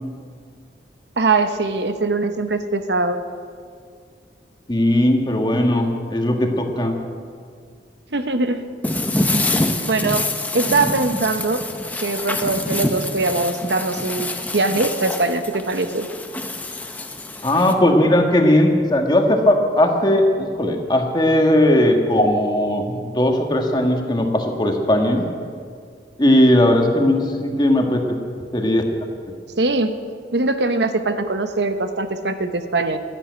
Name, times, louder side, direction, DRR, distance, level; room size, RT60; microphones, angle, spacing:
voice 1, 1.2-3.2 8.1-8.7 9.9-10.3 10.5-11.6 12.0-14.3 14.5-16.1 29.6-30.0 30.3-33.0, right 3 dB, 75° right, 8 dB, 1.0 m, -21 dB
voice 2, 4.7-7.0 17.4-25.3 26.2-28.2 28.5-28.8, left 1 dB, 25° left, 3 dB, 1.5 m, -18 dB
sound 1, 8.8-17.7, left 2 dB, 10° left, 0.8 m, -26 dB
13.0 x 11.0 x 9.4 m, 2.1 s
head